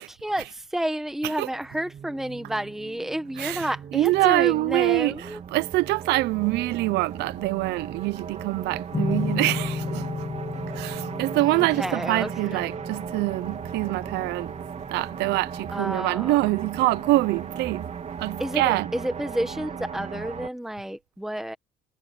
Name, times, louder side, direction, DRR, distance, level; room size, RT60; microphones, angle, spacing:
voice 1, 0.0-5.4 11.3-12.7 15.7-16.4 18.4-21.6, right 1 dB, ahead, 1.3 m, -30 dB
sound 1, 1.5-20.5, right 7 dB, 40° right, 2.5 m, -37 dB
voice 2, 3.4-10.1 10.7-14.6 14.9-18.9, right 20 dB, 85° right, 0.7 m, -25 dB
sound 2, 8.9-16.1, left 5 dB, 30° left, 2.7 m, -34 dB
cardioid pair, 110°, 17 cm